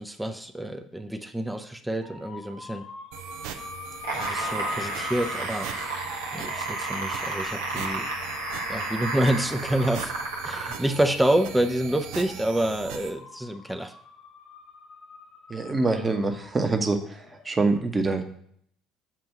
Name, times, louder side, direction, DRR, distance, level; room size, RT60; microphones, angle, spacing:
voice 1, 0.0-2.8 4.1-5.7 6.3-8.1 8.7-10.1 10.4-13.9, right 1 dB, 5° right, 7 dB, 0.6 m, -27 dB
sound 1, 2.0-17.5, left 4 dB, 60° left, 1.6 m, -43 dB
sound 2, 3.1-13.1, right 8 dB, 75° right, 0.5 m, -40 dB
sound 3, 3.9-10.9 11.7-11.8, right 2 dB, 90° right, 1.0 m, -32 dB
voice 2, 15.5-17.0 17.4-18.2, right 3 dB, 25° right, 5 dB, 1.0 m, -24 dB
7.3 x 2.6 x 5.7 m, 0.65 s
hypercardioid pair, 65°, 0 cm